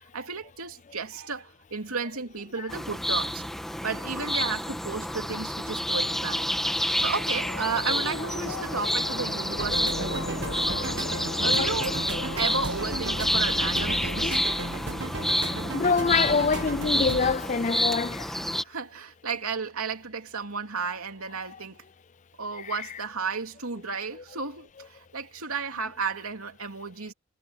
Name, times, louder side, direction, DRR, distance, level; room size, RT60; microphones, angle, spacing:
voice 1, 0.1-3.5 3.8-11.0 11.4-12.0 12.3-14.4 18.3-21.8 22.4-27.1, right 4 dB, 90° right, 2.9 m, -33 dB
sound 1, 2.7-18.6, equal, ahead, 1.6 m, -29 dB
sound 2, 7.3-14.3, left 2 dB, 50° left, 1.2 m, -38 dB
sound 3, 9.6-17.4, right 2 dB, 55° right, 1.9 m, -34 dB
voice 2, 11.6-12.0 14.3-14.6 15.3-18.3 22.6-22.7, left 5 dB, 35° left, 0.4 m, -26 dB
head